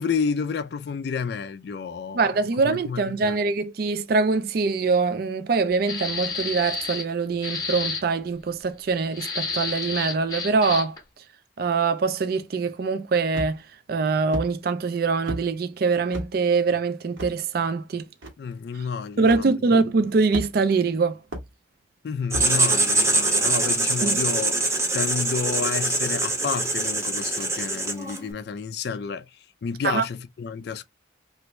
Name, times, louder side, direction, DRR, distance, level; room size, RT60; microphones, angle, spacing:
voice 1, 0.0-2.4 2.6-3.4 18.4-19.8 22.0-24.5 24.9-29.3 29.6-30.8, left 5 dB, 55° left, 0.3 m, -30 dB
voice 2, 2.1-11.0 11.6-13.6 13.9-18.1 19.2-21.2 24.0-24.2 29.8-30.0, right 4 dB, 50° right, 0.4 m, -23 dB
sound 1, 5.9-7.1 7.4-8.0 9.1-11.0, left 4 dB, 20° left, 0.8 m, -30 dB
sound 2, 13.3-13.7 14.3-14.5 15.3-15.5 16.1-16.3 17.2-17.3 18.2-18.3 19.3-19.4 20.3-20.7 21.3-21.5 22.3-22.5, equal, 85° right, 1.2 m, -32 dB
Writing, 22.3-28.3, right 2 dB, 15° right, 0.7 m, -23 dB
3.1 x 2.5 x 3.0 m
head